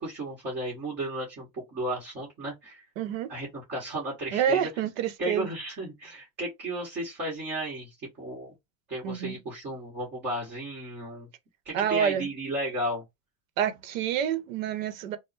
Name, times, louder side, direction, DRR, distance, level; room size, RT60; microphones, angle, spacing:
voice 1, 0.0-2.8 3.3-4.7 5.2-7.9 8.2-8.5 8.9-11.3 11.6-13.0, right 1 dB, 25° right, 1.4 m, -34 dB
voice 2, 3.0-3.3 4.3-5.5 9.0-9.4 11.7-12.3 13.6-15.2, right 9 dB, 75° right, 0.9 m, -28 dB
3.6 x 2.2 x 4.1 m
supercardioid pair, 165°, 39 cm